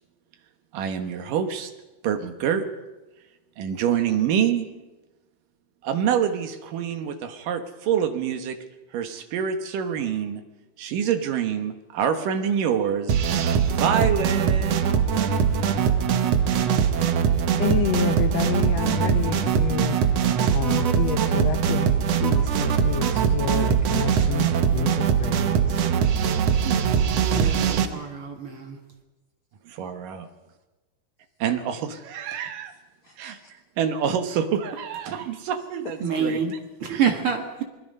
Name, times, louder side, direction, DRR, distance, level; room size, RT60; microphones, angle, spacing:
voice 1, 0.7-1.7 2.0-2.7 3.6-4.7 5.8-8.6 8.9-10.4 10.8-13.2 13.7-14.8 26.5-28.1 29.7-30.3 31.4-32.7 33.2-33.4 33.8-36.4 36.9-37.0, right 8 dB, 65° right, 8 dB, 2.6 m, -26 dB
sound 1, 13.1-27.9, right 7 dB, 85° right, 1.4 m, -22 dB
voice 2, 17.5-25.8 33.0-33.3, left 9 dB, 85° left, 7 dB, 1.5 m, -29 dB
voice 3, 26.6-28.8 35.1-35.3 36.0-36.5 36.8-37.6, right 7 dB, 50° right, 4 dB, 1.8 m, -28 dB
27.5 x 20.0 x 5.4 m, 1.1 s
omnidirectional pair, 4.6 m